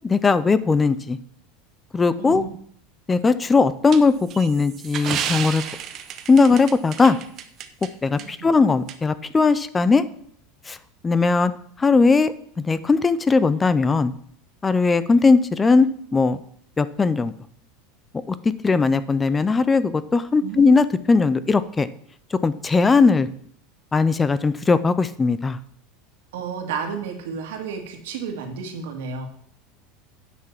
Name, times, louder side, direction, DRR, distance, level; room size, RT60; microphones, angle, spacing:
voice 1, 0.0-1.2 1.9-2.4 3.1-5.6 6.3-7.2 8.0-10.0 10.7-10.8 11.0-11.5 11.8-14.1 14.6-15.9 16.1-16.4 16.8-17.3 18.6-21.9 22.3-23.3 23.9-25.6, left 4 dB, 10° left, 15 dB, 0.4 m, -18 dB
voice 2, 2.2-2.5 8.2-8.3 20.4-20.6 26.3-29.3, right 6 dB, 85° right, 3 dB, 2.2 m, -31 dB
sound 1, 3.9-7.9 8.2-8.3 8.9-9.0, right 9 dB, 35° right, 0.8 m, -31 dB
9.5 x 5.9 x 5.9 m, 0.63 s
supercardioid pair, 165°, 0 cm